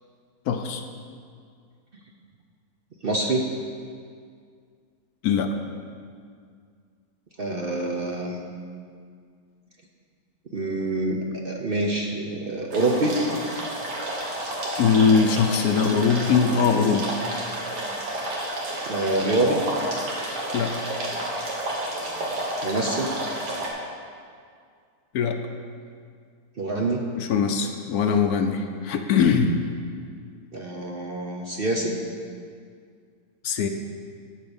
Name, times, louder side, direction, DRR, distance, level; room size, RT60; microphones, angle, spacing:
voice 1, 0.5-0.8 5.2-5.5 14.8-17.2 20.5-20.7 25.1-25.4 27.2-29.5 33.4-33.7, left 6 dB, 70° left, 6 dB, 1.1 m, -21 dB
voice 2, 3.0-3.4 7.4-8.4 10.5-13.2 18.9-19.6 22.6-23.1 26.6-27.0 30.5-32.0, right 2 dB, 45° right, 0 dB, 0.8 m, -26 dB
sound 1, 12.7-23.7, right 1 dB, 80° right, 2.2 m, -30 dB
12.5 x 4.7 x 7.0 m, 2.2 s
omnidirectional pair, 1.7 m